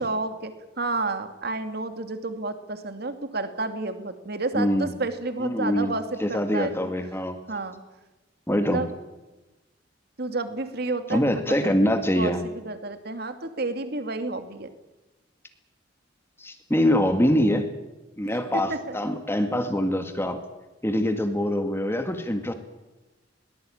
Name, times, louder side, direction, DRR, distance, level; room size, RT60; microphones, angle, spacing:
voice 1, 0.0-6.9 7.5-7.8 8.5-8.9 10.2-11.9 12.2-14.7 18.3-19.0, right 3 dB, 55° right, 8 dB, 2.4 m, -31 dB
voice 2, 4.5-4.9 5.4-5.9 6.2-7.4 8.5-8.8 11.1-12.4 16.4-17.7 18.2-20.5 20.8-22.5, equal, 15° left, 6 dB, 1.9 m, -24 dB
22.0 x 19.5 x 8.8 m, 1.1 s
head